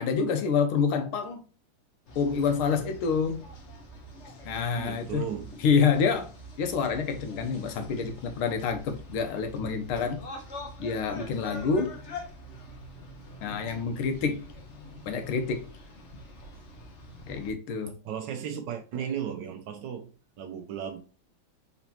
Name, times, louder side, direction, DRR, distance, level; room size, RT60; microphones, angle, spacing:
voice 1, 0.0-1.4 2.1-3.4 4.4-5.2 5.6-6.3 6.6-10.2 10.8-11.9 13.4-14.4 15.1-15.6 17.3-17.9, left 5 dB, 85° left, 1.7 m, -27 dB
sound 1, 2.1-17.5, left 1 dB, 50° left, 0.9 m, -45 dB
voice 2, 4.7-5.5 18.0-20.1 20.4-21.0, right 8 dB, 70° right, 1.2 m, -35 dB
4.1 x 4.1 x 2.8 m
omnidirectional pair, 2.3 m